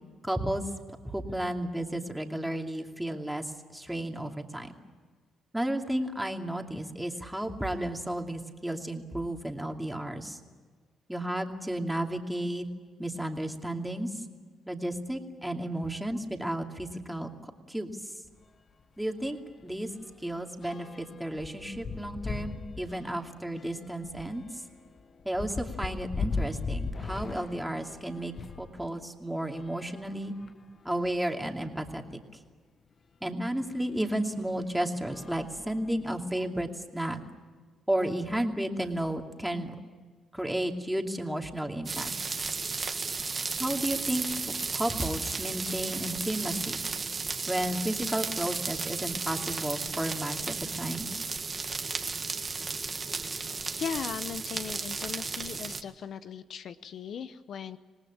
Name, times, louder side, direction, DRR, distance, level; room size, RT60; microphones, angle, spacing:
voice 1, 0.2-0.6 1.1-4.7 5.5-10.4 11.1-12.7 13.0-14.2 14.7-18.1 19.0-19.9 20.2-24.6 25.2-30.3 30.8-32.2 33.2-37.2 37.9-39.8 40.3-42.3 43.6-44.2 44.7-46.8 47.5-51.1, right 1 dB, 5° right, 3 dB, 2.6 m, -33 dB
sound 1, 18.2-18.4 18.8-19.0 19.2-28.7 29.4-30.8 31.5-31.6 31.8-31.9 33.6-33.7 34.4-34.6 35.0-36.3, left 4 dB, 45° left, 1.4 m, -39 dB
sound 2, 41.9-55.8, right 4 dB, 35° right, 1.6 m, -34 dB
voice 2, 53.1-57.8, left 7 dB, 65° left, 12 dB, 0.8 m, -38 dB
26.5 x 19.0 x 8.8 m, 1.5 s
cardioid pair, 90°, 0 cm